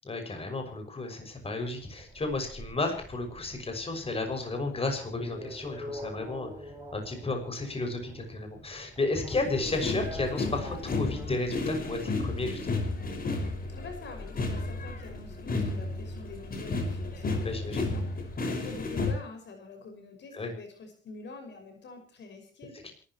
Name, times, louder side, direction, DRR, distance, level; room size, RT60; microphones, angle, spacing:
voice 1, 0.0-12.8 17.4-17.9 20.3-20.5 22.8-22.9, left 2 dB, 30° left, 5 dB, 6.3 m, -33 dB
sound 1, 1.6-11.3, equal, 15° right, 6.5 m, -45 dB
sound 2, 9.3-19.1, left 3 dB, 45° left, 5.6 m, -33 dB
voice 2, 13.7-22.8, left 4 dB, 65° left, 5 dB, 6.0 m, -46 dB
27.5 x 14.0 x 3.1 m, 0.43 s
cardioid pair, 90°, 20 cm